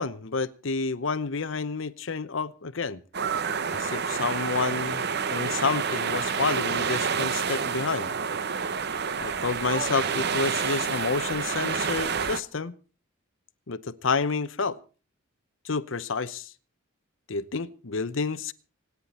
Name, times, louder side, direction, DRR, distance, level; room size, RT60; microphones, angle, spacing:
voice 1, 0.0-3.0 3.7-8.1 9.2-12.7 13.7-14.8 15.6-16.5 17.3-18.5, left 4 dB, 65° left, 0.8 m, -29 dB
sound 1, 3.1-12.4, right 6 dB, 50° right, 0.8 m, -28 dB
26.0 x 9.7 x 4.3 m
head